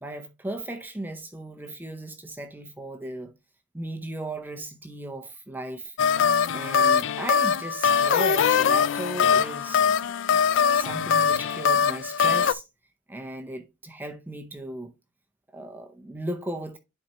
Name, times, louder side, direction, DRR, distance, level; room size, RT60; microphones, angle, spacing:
voice 1, 0.0-3.3 3.7-9.8 10.7-12.6 13.1-14.9 15.5-16.8, right 1 dB, 10° right, 0.6 m, -36 dB
sound 1, 6.0-12.5, left 6 dB, 70° left, 0.4 m, -22 dB
10.0 x 4.2 x 2.9 m
head